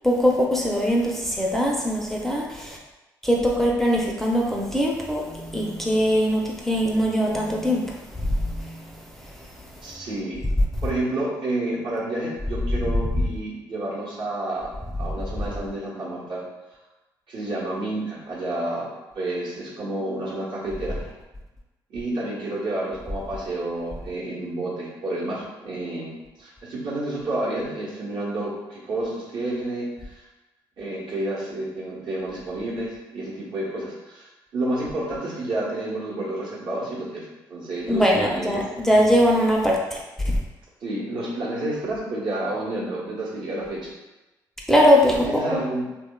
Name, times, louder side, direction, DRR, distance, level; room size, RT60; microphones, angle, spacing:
voice 1, 0.0-2.8 3.2-8.8 37.9-40.0 40.2-40.4 44.7-45.3 45.5-45.6, equal, 5° left, -3 dB, 0.5 m, -21 dB
voice 2, 9.8-10.4 10.8-16.4 17.3-18.9 19.1-21.1 21.9-30.3 30.8-38.7 40.8-43.9 45.1-45.9, right 1 dB, 65° right, -6 dB, 1.0 m, -30 dB
2.7 x 2.2 x 2.2 m, 1.1 s
supercardioid pair, 60°, 9 cm